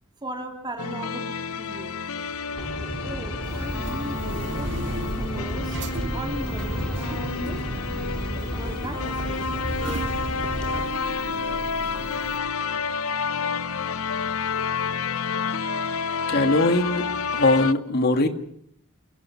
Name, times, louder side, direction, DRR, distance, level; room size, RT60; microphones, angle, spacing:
voice 1, 0.2-2.0 3.0-4.8 5.1-5.8 6.1-7.7 8.3-9.8, right 1 dB, 20° right, 3 dB, 3.3 m, -37 dB
sound 1, 0.8-17.7, left 5 dB, 65° left, 0.8 m, -30 dB
sound 2, 2.6-10.9, right 1 dB, 5° left, 3.8 m, -32 dB
sound 3, 3.4-12.4, right 1 dB, 55° right, 2.0 m, -36 dB
voice 2, 16.3-17.0 17.3-18.3, left 2 dB, 45° left, 7 dB, 2.1 m, -20 dB
28.0 x 17.0 x 5.9 m, 0.67 s
head